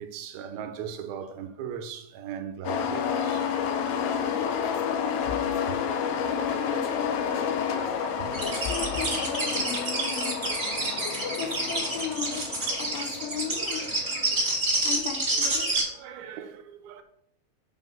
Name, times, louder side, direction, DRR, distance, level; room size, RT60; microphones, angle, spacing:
voice 1, 0.0-3.5 5.7-5.8 8.2-8.4 8.9-9.0 11.4-11.5 13.4-14.9 15.3-17.0, right 8 dB, 80° right, 2.5 m, -40 dB
sound 1, 2.6-15.4, left 7 dB, 90° left, 2.5 m, -30 dB
voice 2, 3.8-7.9 8.4-10.4 11.0-12.4 12.8-14.0 14.8-15.7, left 7 dB, 75° left, 2.4 m, -37 dB
sound 2, 8.3-15.8, right 2 dB, 25° right, 1.7 m, -28 dB
8.0 x 3.9 x 5.2 m
omnidirectional pair, 4.4 m